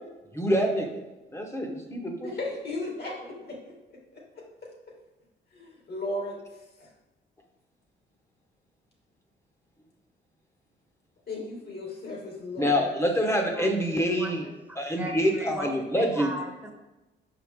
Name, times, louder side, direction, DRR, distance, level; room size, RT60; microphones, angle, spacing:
voice 1, 0.3-1.0 1.3-2.3 12.6-14.5 14.8-16.3, equal, 15° left, 2 dB, 1.1 m, -26 dB
voice 2, 2.2-3.7 4.1-4.2 5.5-6.9 11.3-12.9, left 2 dB, 55° left, -1 dB, 2.1 m, -36 dB
voice 3, 13.5-16.7, right 1 dB, 10° right, 2 dB, 1.1 m, -39 dB
5.7 x 4.8 x 3.6 m, 1.0 s
cardioid pair, 90°, 20 cm